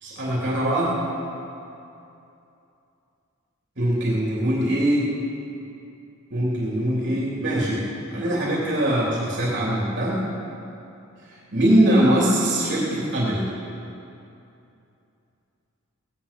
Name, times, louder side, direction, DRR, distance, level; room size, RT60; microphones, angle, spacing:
voice 1, 0.0-0.9 3.8-5.0 6.3-7.8 8.1-10.2 11.5-13.5, right 1 dB, 50° right, -5 dB, 3.3 m, -22 dB
17.5 x 10.0 x 7.0 m, 2.7 s
head